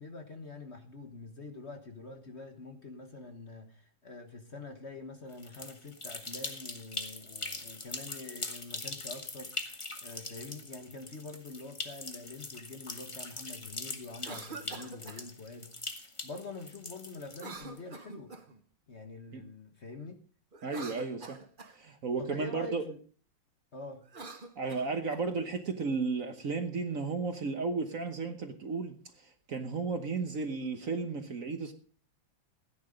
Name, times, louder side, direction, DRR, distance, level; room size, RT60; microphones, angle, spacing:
voice 1, 0.0-9.5 10.0-15.7 16.2-18.3 18.9-20.2 22.2-23.0 23.7-24.0, left 3 dB, 40° left, 1.4 m, -45 dB
sound 1, 5.3-17.8, left 2 dB, 20° left, 1.0 m, -42 dB
Cough, 14.1-15.2 17.3-18.6 20.5-21.8 24.0-25.2, right 3 dB, 30° right, 1.1 m, -45 dB
voice 2, 20.6-21.4 21.7-22.8 24.6-31.7, right 4 dB, 50° right, 1.3 m, -34 dB
15.5 x 9.8 x 5.2 m
omnidirectional pair, 2.0 m